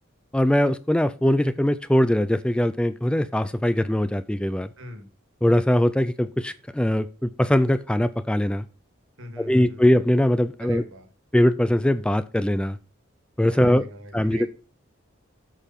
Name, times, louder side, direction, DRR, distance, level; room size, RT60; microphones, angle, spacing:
voice 1, 0.3-4.7 5.4-8.6 9.4-10.8 11.3-12.8 13.4-13.8 14.1-14.5, left 1 dB, 5° left, 14 dB, 0.3 m, -21 dB
voice 2, 4.8-5.1 9.2-9.8 10.6-11.1 13.5-14.5, equal, 70° right, 7 dB, 2.1 m, -40 dB
8.3 x 5.5 x 5.8 m, 0.36 s
head